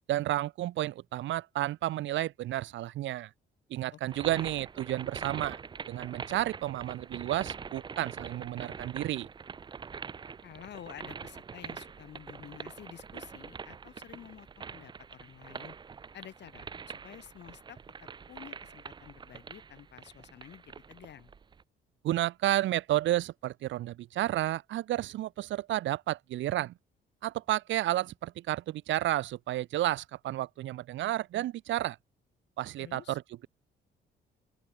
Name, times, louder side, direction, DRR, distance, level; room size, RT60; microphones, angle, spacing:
voice 1, 0.1-3.3 3.7-5.6 5.9-9.3 22.0-26.7 27.2-32.0 32.6-33.5, right 14 dB, 70° right, 0.6 m, -31 dB
voice 2, 3.9-4.5 10.4-15.8 16.1-21.3 32.8-33.2, left 10 dB, 60° left, 1.3 m, -50 dB
sound 1, 4.1-21.6, right 6 dB, 25° right, 0.4 m, -44 dB
open air
cardioid pair, 90°, 20 cm